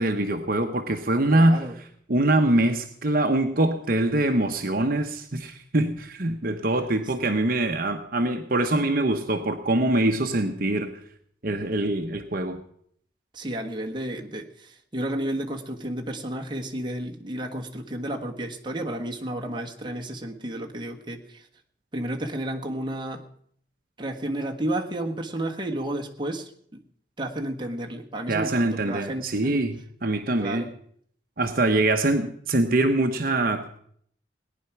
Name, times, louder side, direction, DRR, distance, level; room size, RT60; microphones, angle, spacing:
voice 1, 0.0-1.6 2.1-10.9 11.4-12.6 28.3-30.7 31.4-33.8, right 2 dB, 50° right, 5 dB, 1.0 m, -24 dB
voice 2, 1.3-1.7 13.3-21.5 21.9-23.3 24.0-26.8 27.2-29.6 30.4-30.7, right 1 dB, 25° right, 1 dB, 1.3 m, -32 dB
18.0 x 10.0 x 5.9 m, 0.63 s
head